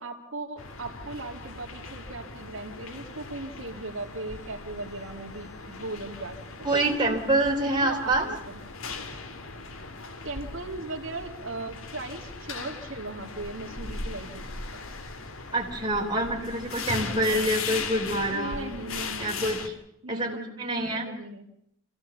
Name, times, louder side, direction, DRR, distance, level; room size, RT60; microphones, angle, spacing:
voice 1, 0.0-7.0 7.3-7.4 7.8-8.6 10.2-14.8 17.1-17.6 18.3-19.3 20.0-21.5, right 2 dB, 75° right, 3 dB, 2.3 m, -38 dB
sound 1, 0.6-19.7, left 4 dB, 90° left, 2.0 m, -38 dB
voice 2, 6.6-8.3 15.5-18.6 19.2-19.7 20.1-20.3 20.6-21.1, right 1 dB, 20° right, -1 dB, 3.5 m, -26 dB
27.0 x 15.5 x 7.1 m, 0.79 s
head